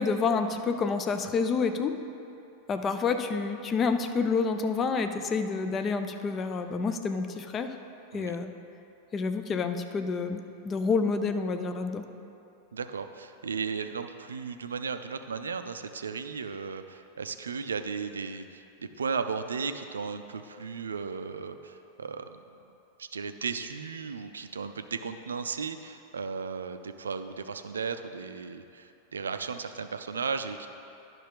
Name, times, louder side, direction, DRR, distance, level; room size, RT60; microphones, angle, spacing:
voice 1, 0.0-1.9 2.7-7.7 8.1-8.5 9.1-12.1, left 4 dB, 25° left, 8 dB, 0.5 m, -28 dB
voice 2, 12.7-22.3 23.0-30.7, right 5 dB, 70° right, 9 dB, 0.4 m, -35 dB
11.0 x 5.8 x 3.6 m, 2.8 s
figure-of-eight pair, 90°, 0 cm